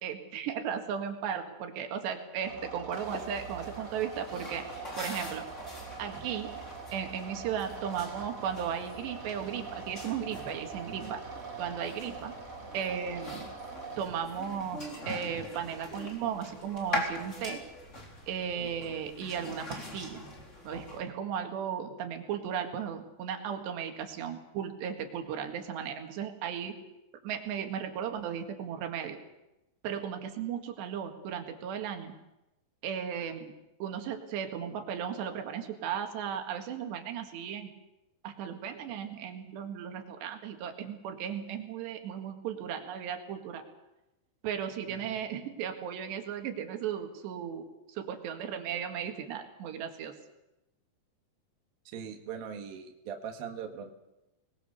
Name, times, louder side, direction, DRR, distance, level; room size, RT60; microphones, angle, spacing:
voice 1, 0.0-4.6 5.0-5.4 6.0-6.5 6.9-11.2 11.6-12.3 12.7-13.5 14.0-17.6 18.3-20.2 20.7-26.8 27.2-29.2 29.8-32.1 32.8-33.5 33.8-37.7 38.2-43.6 44.4-50.2, right 8 dB, 90° right, 5 dB, 4.0 m, -36 dB
sound 1, 2.4-14.1, right 4 dB, 25° right, 2.5 m, -43 dB
sound 2, 2.9-21.0, left 1 dB, 15° left, 4.0 m, -43 dB
voice 2, 51.9-53.9, right 7 dB, 65° right, 4 dB, 3.3 m, -41 dB
25.5 x 20.5 x 6.9 m, 0.95 s
omnidirectional pair, 4.8 m